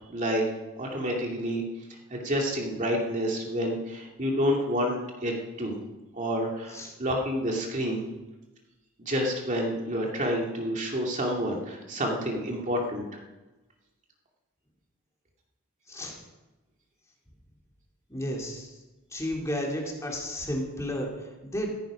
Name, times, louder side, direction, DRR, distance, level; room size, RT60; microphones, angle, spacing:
voice 1, 0.1-0.5 0.8-1.6 2.1-5.8 6.1-8.0 9.0-13.0, equal, 35° right, 0 dB, 2.5 m, -29 dB
voice 2, 18.1-18.7 19.1-21.7, equal, 15° left, -1 dB, 2.9 m, -32 dB
15.5 x 15.5 x 5.1 m, 1.1 s
head